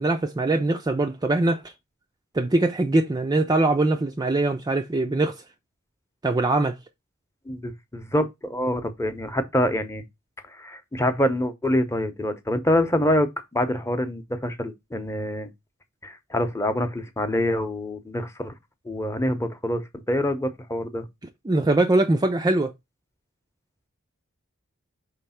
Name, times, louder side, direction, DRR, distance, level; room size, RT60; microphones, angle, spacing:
voice 1, 0.0-1.6 2.3-5.4 6.2-6.8 21.5-22.7, right 2 dB, 20° right, 0.4 m, -22 dB
voice 2, 7.5-10.0 10.6-15.5 16.0-18.5 18.8-21.0, left 1 dB, 15° left, 0.8 m, -26 dB
5.6 x 3.3 x 5.6 m
head